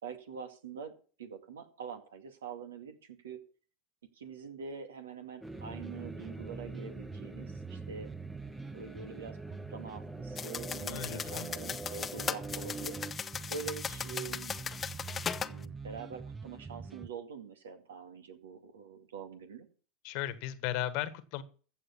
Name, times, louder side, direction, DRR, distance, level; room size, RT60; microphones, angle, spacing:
voice 1, 0.0-3.4 4.1-8.1 8.7-12.9 13.5-14.6 15.4-19.7, right 6 dB, 80° right, 7 dB, 2.1 m, -45 dB
sound 1, 5.4-13.1, right 2 dB, 5° right, 1.0 m, -46 dB
sound 2, 5.4-17.1, right 4 dB, 20° right, 0.7 m, -45 dB
sound 3, 10.4-15.5, left 6 dB, 25° left, 0.8 m, -38 dB
voice 2, 10.9-11.5 20.0-21.4, left 13 dB, 60° left, 14 dB, 1.5 m, -36 dB
15.0 x 7.6 x 5.9 m, 0.40 s
hypercardioid pair, 90°, 0 cm